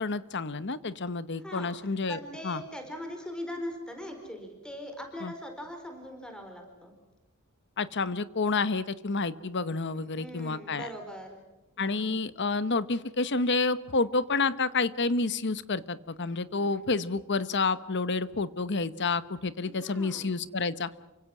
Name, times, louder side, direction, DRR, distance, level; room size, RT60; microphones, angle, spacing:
voice 1, 0.0-2.2 2.4-2.6 5.2-5.3 7.8-10.9 11.8-20.9, left 3 dB, 55° left, 15 dB, 1.1 m, -29 dB
voice 2, 1.4-6.9 9.9-11.4 11.8-12.2 19.6-20.3, equal, 5° left, 5 dB, 4.6 m, -41 dB
29.0 x 24.5 x 6.1 m, 0.99 s
head